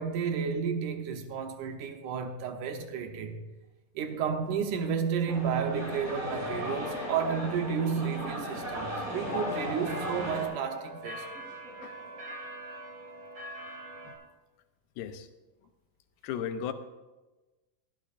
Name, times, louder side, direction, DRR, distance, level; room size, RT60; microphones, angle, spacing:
voice 1, 0.0-3.5 4.0-11.3, right 6 dB, 70° right, 2.3 m, -32 dB
sound 1, 5.3-10.5, equal, 25° right, 4.0 m, -35 dB
sound 2, 9.2-14.1, right 1 dB, 45° right, 5.8 m, -43 dB
voice 2, 15.0-15.3 16.2-16.7, left 8 dB, 80° left, 2.3 m, -35 dB
18.5 x 12.0 x 2.5 m
omnidirectional pair, 3.9 m